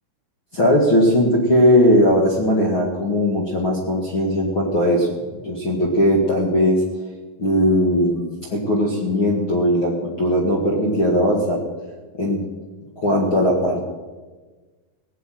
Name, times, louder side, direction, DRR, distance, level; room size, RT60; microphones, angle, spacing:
voice 1, 0.5-5.1 5.4-6.8 7.4-8.2 8.5-11.6 12.2-12.4 12.9-13.8, equal, 50° left, -2 dB, 1.6 m, -18 dB
18.0 x 8.1 x 9.2 m, 1.3 s
omnidirectional pair, 5.3 m